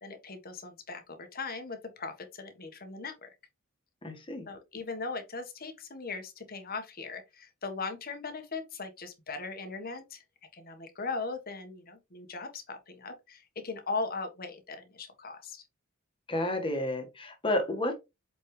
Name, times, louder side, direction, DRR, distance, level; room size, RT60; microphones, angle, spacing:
voice 1, 0.0-3.3 4.5-10.2 10.5-15.6, left 4 dB, 45° left, 1.4 m, -39 dB
voice 2, 4.0-4.5 16.3-17.9, left 1 dB, 25° left, 1.7 m, -31 dB
8.2 x 4.3 x 3.3 m
head